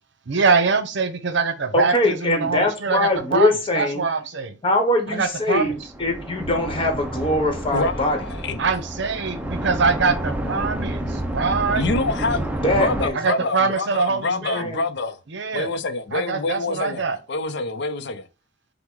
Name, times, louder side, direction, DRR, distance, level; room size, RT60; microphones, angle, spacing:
voice 1, 0.3-4.6 5.1-5.7 8.6-11.8 13.1-14.6 15.3-15.7 16.1-17.2, right 4 dB, 65° right, 0.7 m, -23 dB
voice 2, 1.7-4.0 4.6-8.2 12.6-13.2 14.3-14.8, left 1 dB, 30° left, 1.1 m, -22 dB
sound 1, 5.6-13.1, right 1 dB, 10° right, 0.5 m, -29 dB
voice 3, 7.7-8.6 11.8-15.2 15.5-18.3, left 3 dB, 60° left, 0.5 m, -26 dB
5.7 x 2.1 x 3.7 m
head